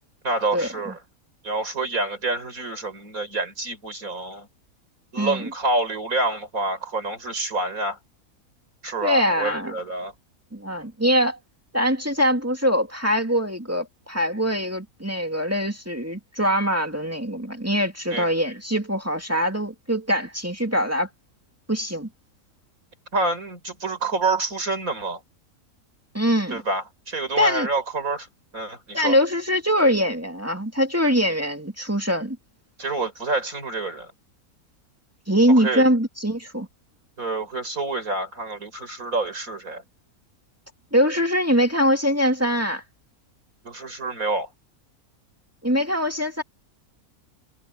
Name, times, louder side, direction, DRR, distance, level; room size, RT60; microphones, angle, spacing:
voice 1, 0.2-1.0 1.4-4.5 5.1-8.0 8.8-10.1 18.1-18.3 23.1-25.2 26.5-28.3 28.5-29.2 32.8-34.1 35.6-35.9 37.2-39.8 43.6-44.5, right 2 dB, 65° right, 5.3 m, -27 dB
voice 2, 5.2-5.5 9.0-9.7 10.5-11.4 11.7-21.1 21.7-22.1 26.1-26.6 27.4-27.7 28.9-32.4 35.3-36.7 40.9-42.8 45.6-46.4, equal, 10° right, 2.3 m, -23 dB
omnidirectional pair, 1.6 m